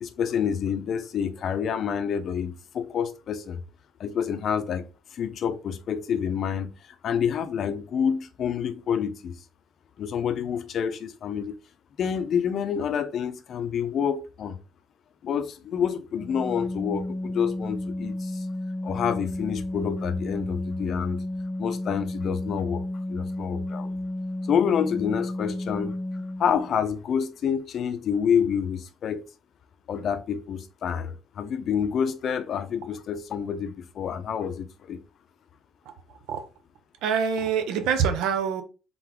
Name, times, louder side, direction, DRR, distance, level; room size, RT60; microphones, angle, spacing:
voice 1, 0.0-3.6 4.0-9.3 10.0-11.6 12.0-14.6 15.2-18.4 18.8-21.2 21.6-23.9 24.5-26.0 26.4-29.2 29.9-35.0, left 7 dB, 50° left, 0.5 m, -28 dB
Organ, 16.2-26.8, left 1 dB, 10° right, 0.5 m, -32 dB
voice 2, 35.9-36.4 37.0-38.6, right 7 dB, 85° right, 0.7 m, -26 dB
3.8 x 3.7 x 3.0 m
cardioid pair, 135°, 0 cm